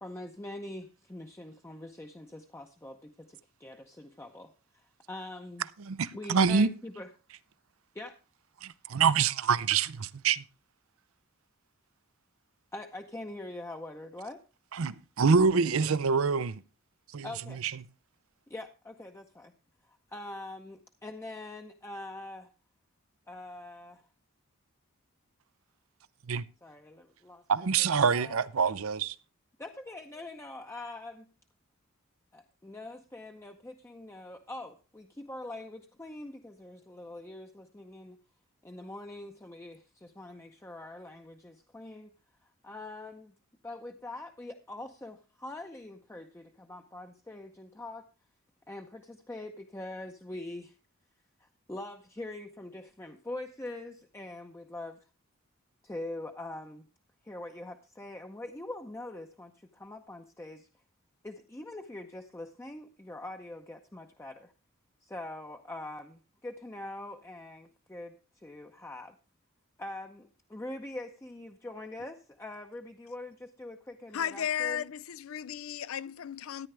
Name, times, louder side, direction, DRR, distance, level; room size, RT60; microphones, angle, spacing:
voice 1, 0.0-5.7 6.1-7.1 7.9-8.1 12.7-14.4 17.2-17.6 18.5-19.5 19.8-22.5 23.3-24.0 26.6-27.4 27.8-28.5 29.6-31.3 32.3-38.2 38.6-42.1 42.4-43.3 43.6-48.0 48.7-50.8 51.4-55.0 55.8-56.9 57.2-60.7 61.2-64.5 65.0-69.2 69.8-74.9, left 2 dB, 15° left, 0.6 m, -43 dB
voice 2, 5.8-6.7 8.6-10.4 14.8-16.6 17.1-17.3 26.3-26.4 27.5-29.1, right 5 dB, 80° right, 0.6 m, -26 dB
voice 3, 74.1-76.7, left 9 dB, 80° left, 0.5 m, -34 dB
13.5 x 9.8 x 3.3 m
head